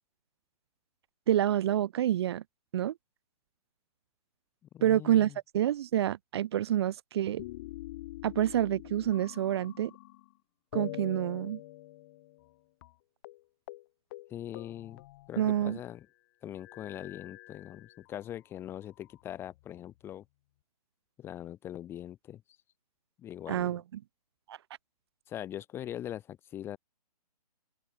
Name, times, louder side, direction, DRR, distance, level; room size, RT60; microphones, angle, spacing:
voice 1, 1.3-2.4 2.7-2.9 4.8-7.4 8.2-9.9 10.7-11.6 15.4-15.8 23.5-23.8 24.5-24.6, right 11 dB, 40° right, 1.4 m, -28 dB
voice 2, 4.7-5.4 14.3-15.0 15.3-16.1 16.4-20.2 21.2-22.4 23.2-23.8 25.3-26.8, left 11 dB, 10° left, 1.2 m, -42 dB
sound 1, 7.4-10.3 10.7-12.5 12.8-12.9 13.2-13.4 13.7-13.8 14.1-15.8 16.6-18.2 18.9-19.8, left 18 dB, 30° left, 7.4 m, -46 dB
open air
hypercardioid pair, 160°, 21 cm